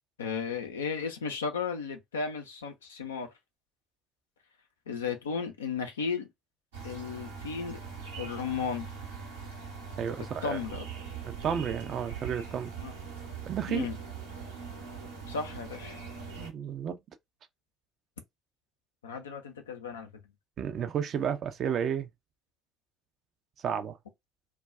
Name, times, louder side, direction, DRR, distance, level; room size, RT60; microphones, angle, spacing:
voice 1, 0.2-3.3 4.9-6.3 6.8-7.8 8.2-8.9 10.4-10.9 12.8-12.9 13.7-14.0 15.3-16.0 19.0-20.1, left 5 dB, 75° left, 0.5 m, -34 dB
sound 1, 6.7-16.5, right 6 dB, 80° right, 0.9 m, -41 dB
voice 2, 10.0-10.6 11.2-12.7 13.5-13.9 16.4-17.0 20.6-22.1 23.6-24.0, right 8 dB, 45° right, 0.5 m, -32 dB
2.3 x 2.2 x 3.6 m
figure-of-eight pair, 50°, 0 cm